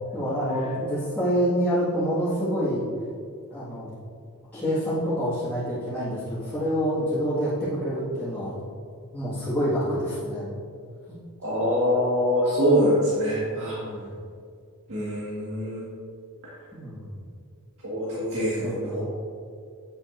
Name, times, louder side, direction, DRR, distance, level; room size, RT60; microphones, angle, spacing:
voice 1, 0.1-2.9 3.5-3.9 4.5-8.6 9.1-10.6 11.1-11.2 13.5-14.2 16.7-17.2 18.3-19.0, equal, 10° left, -14 dB, 1.8 m, -27 dB
voice 2, 11.4-13.7 14.9-15.8 17.8-19.1, equal, 65° right, -8 dB, 1.7 m, -24 dB
8.8 x 7.2 x 2.6 m, 2.3 s
head